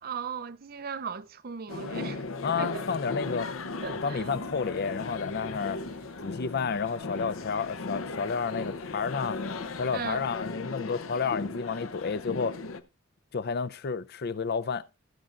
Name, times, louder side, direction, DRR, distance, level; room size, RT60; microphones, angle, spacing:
voice 1, 0.0-2.2 2.6-2.9 3.8-4.3 9.9-10.3, right 6 dB, 45° right, 0.5 m, -37 dB
sound 1, 1.7-12.8, left 3 dB, 80° left, 0.8 m, -37 dB
voice 2, 2.4-3.5 3.9-5.8 6.2-9.4 9.8-12.6 13.3-14.9, left 5 dB, 50° left, 0.5 m, -31 dB
sound 2, 3.8-10.5, equal, 10° right, 0.9 m, -57 dB
18.5 x 7.6 x 2.5 m
head